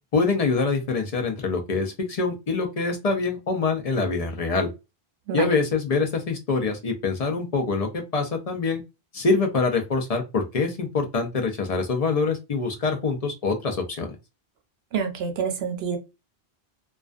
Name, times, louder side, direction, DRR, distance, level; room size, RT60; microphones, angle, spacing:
voice 1, 0.1-4.7 5.3-8.8 9.1-14.1, left 4 dB, 50° left, 0.5 m, -25 dB
voice 2, 14.9-16.0, right 6 dB, 80° right, 0.8 m, -27 dB
2.3 x 2.2 x 2.4 m
omnidirectional pair, 1.1 m